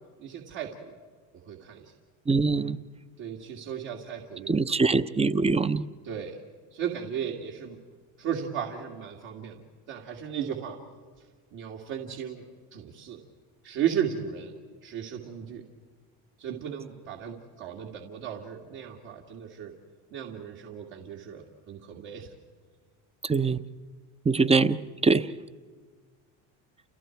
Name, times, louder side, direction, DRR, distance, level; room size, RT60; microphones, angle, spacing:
voice 1, 0.2-0.9 1.5-1.9 3.2-4.5 6.0-6.4 6.7-7.8 8.2-9.6 9.9-10.8 11.5-12.4 12.7-13.2 13.6-14.5 14.8-15.6 16.4-19.7 20.1-22.3, right 8 dB, 65° right, -1 dB, 2.6 m, -35 dB
voice 2, 2.3-2.8 4.5-5.8 23.2-23.6 24.2-25.3, right 4 dB, 15° right, 13 dB, 0.7 m, -23 dB
30.0 x 29.0 x 4.6 m, 1.5 s
supercardioid pair, 90°, 42 cm